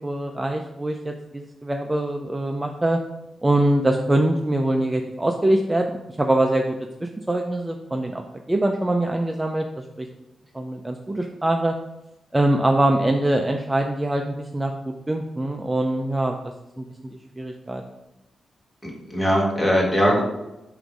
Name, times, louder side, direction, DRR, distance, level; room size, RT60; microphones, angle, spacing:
voice 1, 0.0-3.0 3.4-8.2 8.5-10.1 10.5-11.7 12.3-16.4 16.8-17.8, right 1 dB, 10° right, 3 dB, 0.4 m, -23 dB
voice 2, 18.8-20.2, equal, 15° left, -2 dB, 1.5 m, -20 dB
7.8 x 2.6 x 5.1 m, 0.94 s
wide cardioid pair, 155°, 0 cm